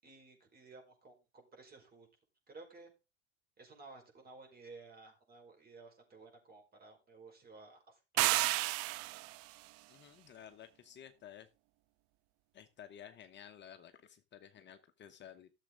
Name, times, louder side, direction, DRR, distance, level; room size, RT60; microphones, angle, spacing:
voice 1, 0.0-2.1 2.5-2.9 3.6-8.4, right 3 dB, 25° right, 3 dB, 5.1 m, -55 dB
sound 1, 8.2-9.4, right 20 dB, 45° right, 0.5 m, -31 dB
voice 2, 9.9-11.5 12.5-15.5, left 9 dB, 30° left, 8 dB, 1.0 m, -54 dB
13.5 x 7.3 x 3.9 m, 0.29 s
hypercardioid pair, 100°, 34 cm